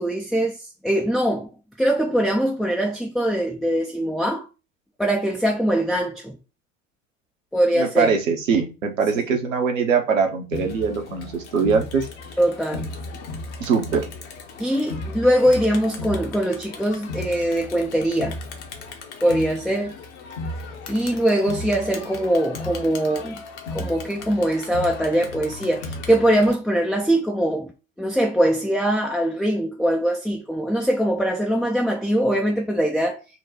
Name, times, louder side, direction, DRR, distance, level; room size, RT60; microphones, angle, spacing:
voice 1, 0.0-1.5 1.8-4.5 5.0-6.4 7.5-8.2 9.1-9.4 12.4-12.9 14.6-18.4 19.2-20.0 20.9-23.4 23.7-27.7 28.0-33.2, right 1 dB, ahead, 0.3 m, -22 dB
voice 2, 7.8-12.1 13.6-14.1, right 5 dB, 75° right, 1.0 m, -22 dB
Crowd, 10.5-26.5, left 2 dB, 60° left, 1.1 m, -35 dB
4.3 x 2.3 x 4.0 m
figure-of-eight pair, 80°, 40 cm